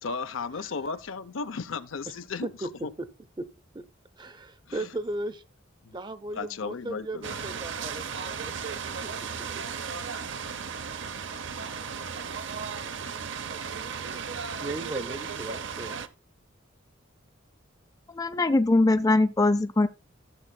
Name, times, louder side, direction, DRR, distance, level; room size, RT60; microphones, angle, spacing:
voice 1, 0.0-2.9 4.7-4.9 5.8-6.0 6.3-7.4, left 4 dB, 80° left, 0.6 m, -35 dB
voice 2, 2.4-3.1 3.4-3.5 3.7-3.8 4.2-5.4 5.9-8.6 9.0-9.1 14.1-14.2 14.6-16.0, right 2 dB, 25° right, 0.6 m, -36 dB
sound 1, 7.2-16.1, right 6 dB, 65° right, 0.7 m, -35 dB
voice 3, 18.1-19.9, left 2 dB, 20° left, 0.4 m, -22 dB
14.5 x 7.5 x 2.2 m
head